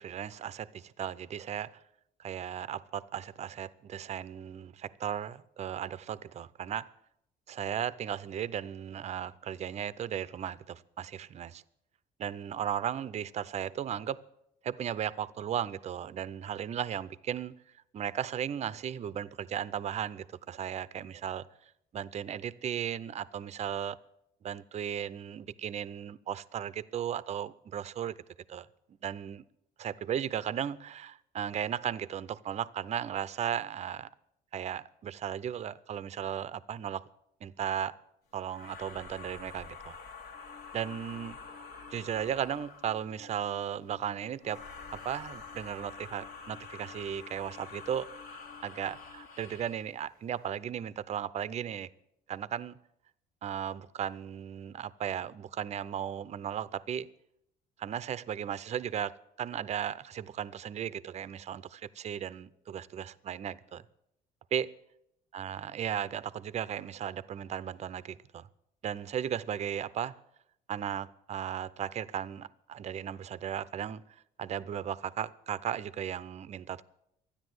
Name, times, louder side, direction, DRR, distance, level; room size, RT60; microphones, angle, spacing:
voice 1, 0.0-1.8 2.2-6.9 7.5-11.6 12.2-14.2 14.6-17.5 17.9-21.5 21.9-24.0 24.4-28.2 28.5-28.7 29.0-29.4 29.8-34.1 34.5-37.1 37.4-38.0 38.3-39.9 40.7-41.4 41.9-44.6 44.9-51.9 52.3-52.8 53.4-57.1 57.8-63.8 64.5-64.7 65.3-68.5 68.8-70.2 70.7-76.8, right 9 dB, 40° right, 0.5 m, -36 dB
sound 1, 38.5-43.0 44.4-49.9, left 4 dB, 70° left, 1.9 m, -47 dB
Alarm, 40.3-49.3, left 8 dB, 40° left, 0.8 m, -57 dB
13.0 x 10.0 x 7.9 m
cardioid pair, 110°, 17 cm